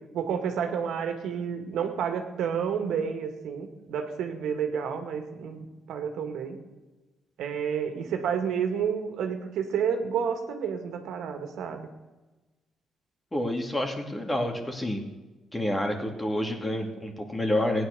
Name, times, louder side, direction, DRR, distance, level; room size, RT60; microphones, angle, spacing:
voice 1, 0.1-6.6 7.4-11.9, right 7 dB, 80° right, 5 dB, 2.0 m, -30 dB
voice 2, 13.3-15.0 15.5-17.9, left 1 dB, 15° left, 3 dB, 2.6 m, -28 dB
16.5 x 9.6 x 6.8 m, 1.2 s
cardioid pair, 90°, 0 cm